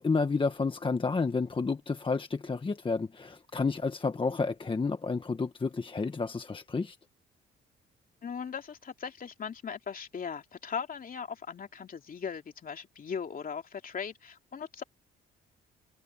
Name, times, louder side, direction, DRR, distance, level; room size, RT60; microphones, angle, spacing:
voice 1, 0.0-7.0, left 4 dB, 25° left, 1.4 m, -30 dB
voice 2, 8.2-14.8, left 6 dB, 45° left, 2.9 m, -38 dB
cardioid pair, 90°, 20 cm